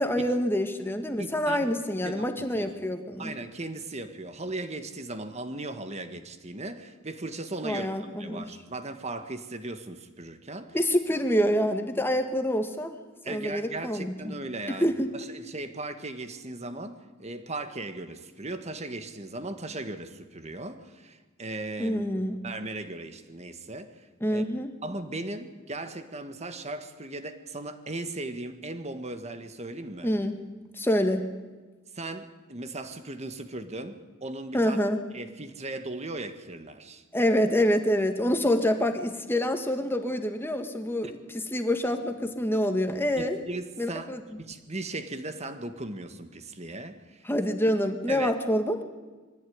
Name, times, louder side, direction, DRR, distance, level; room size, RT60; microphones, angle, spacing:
voice 1, 0.0-3.3 7.6-8.4 10.7-13.0 13.3-14.4 14.7-15.1 21.8-22.4 24.2-24.7 30.0-30.4 30.8-31.2 34.5-35.0 37.1-43.4 43.8-44.4 47.3-48.8, equal, 10° left, 6 dB, 1.7 m, -26 dB
voice 2, 1.2-1.7 2.0-2.7 3.2-10.8 13.2-22.0 22.4-24.4 24.8-30.1 31.9-34.8 35.1-37.0 43.2-47.2 48.1-48.3, right 2 dB, 35° right, 9 dB, 1.6 m, -37 dB
23.0 x 15.0 x 9.6 m, 1.3 s
head